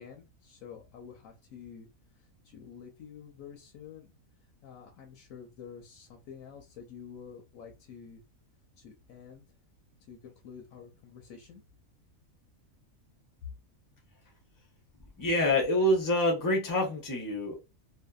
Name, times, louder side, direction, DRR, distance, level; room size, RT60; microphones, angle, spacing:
voice 1, 0.0-1.9 2.1-4.1 4.6-8.2 8.8-9.6 10.1-11.6, left 7 dB, 75° left, 1.0 m, -49 dB
voice 2, 15.2-17.5, left 1 dB, 20° left, 0.6 m, -26 dB
2.7 x 2.3 x 2.3 m
omnidirectional pair, 1.4 m